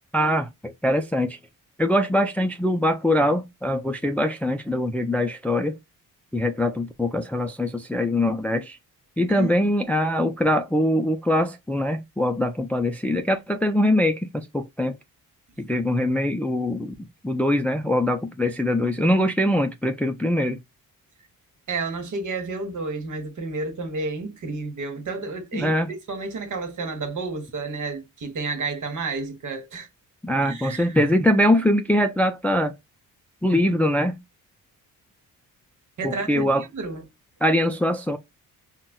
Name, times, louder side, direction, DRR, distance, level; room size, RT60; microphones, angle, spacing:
voice 1, 0.1-1.4 1.8-5.8 6.3-8.8 9.2-14.9 15.6-20.6 25.5-25.9 30.2-32.7 33.4-34.2 36.0-36.6 37.4-38.2, left 1 dB, 5° left, 0.3 m, -23 dB
voice 2, 21.7-29.9 30.5-31.0 36.0-37.0, right 3 dB, 60° right, 1.3 m, -31 dB
3.9 x 2.2 x 2.2 m
cardioid pair, 85°, 35 cm